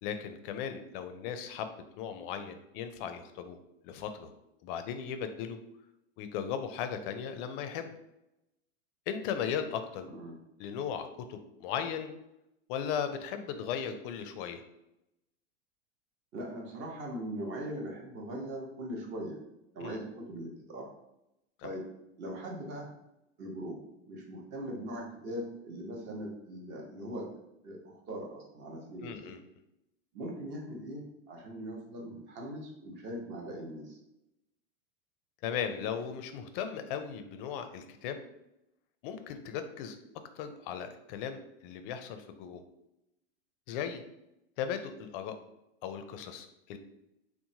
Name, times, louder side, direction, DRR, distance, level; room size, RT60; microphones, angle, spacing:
voice 1, 0.0-3.6 3.8-4.3 4.6-5.6 6.2-7.9 9.1-10.1 10.6-12.2 12.7-14.6 19.8-20.0 21.6-21.7 29.0-29.4 35.4-38.2 39.0-40.0 40.4-42.6 43.7-44.0 44.6-45.4 45.8-46.8, left 8 dB, 50° left, 8 dB, 0.4 m, -37 dB
voice 2, 16.3-19.4 19.7-20.9 21.6-21.8 22.2-22.9 23.4-23.8 24.1-27.3 27.6-29.3 30.1-34.0, right 1 dB, 35° right, -1 dB, 0.8 m, -40 dB
3.0 x 2.1 x 2.7 m, 0.87 s
supercardioid pair, 135°, 35 cm